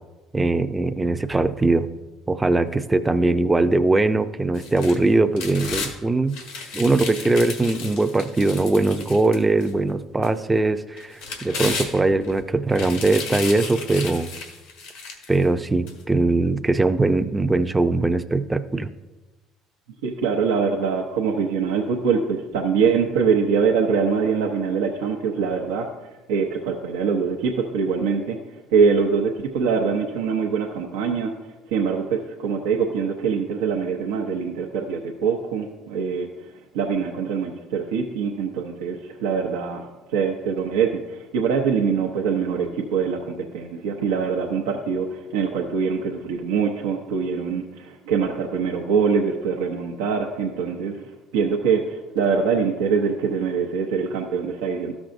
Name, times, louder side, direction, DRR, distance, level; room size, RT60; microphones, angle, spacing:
voice 1, 0.3-1.9 2.3-6.4 6.7-14.3 15.3-18.9, right 2 dB, 15° right, 9 dB, 0.5 m, -21 dB
sound 1, 4.5-5.9 6.3-9.7 10.2-10.3 11.0-12.3 12.7-15.4 15.9-16.0, left 4 dB, 90° left, 1.5 m, -33 dB
voice 2, 20.0-25.9 26.3-31.3 31.7-36.3 36.7-54.9, right 6 dB, 90° right, 0 dB, 0.7 m, -23 dB
13.0 x 6.1 x 2.6 m, 1.1 s
supercardioid pair, 85°, 0 cm